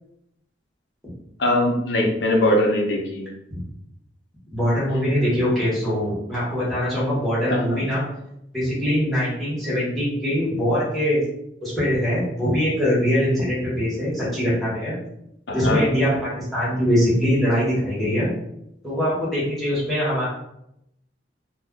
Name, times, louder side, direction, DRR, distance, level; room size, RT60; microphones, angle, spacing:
voice 1, 1.4-3.3 7.5-7.8 15.5-15.8, left 1 dB, 65° left, 1 dB, 0.6 m, -21 dB
voice 2, 4.5-8.0 8.5-11.2 11.6-15.0 15.5-18.3 18.8-20.3, equal, ahead, -10 dB, 1.1 m, -22 dB
2.4 x 2.1 x 3.6 m, 0.80 s
head